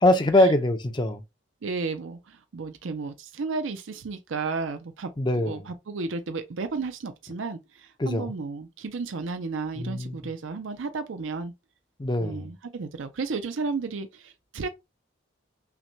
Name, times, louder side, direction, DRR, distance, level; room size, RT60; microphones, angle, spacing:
voice 1, 0.0-1.2 5.2-5.7 8.0-8.3 9.8-10.2 12.0-12.5, left 1 dB, 25° left, 0.5 m, -23 dB
voice 2, 1.6-5.1 5.4-11.5 12.2-14.7, right 4 dB, 80° right, 0.5 m, -33 dB
5.7 x 2.2 x 2.7 m
head